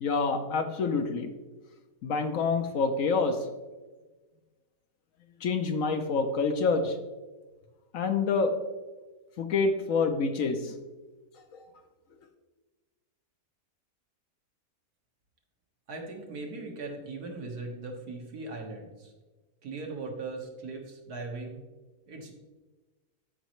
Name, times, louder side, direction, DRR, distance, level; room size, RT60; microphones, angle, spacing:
voice 1, 0.0-1.3 2.0-3.4 5.4-6.9 7.9-8.5 9.4-10.7, left 4 dB, 65° left, 6 dB, 1.0 m, -27 dB
voice 2, 15.9-19.1 19.6-21.6 22.1-22.3, right 3 dB, 75° right, 1 dB, 1.9 m, -39 dB
13.5 x 5.4 x 3.1 m, 1.2 s
omnidirectional pair, 1.7 m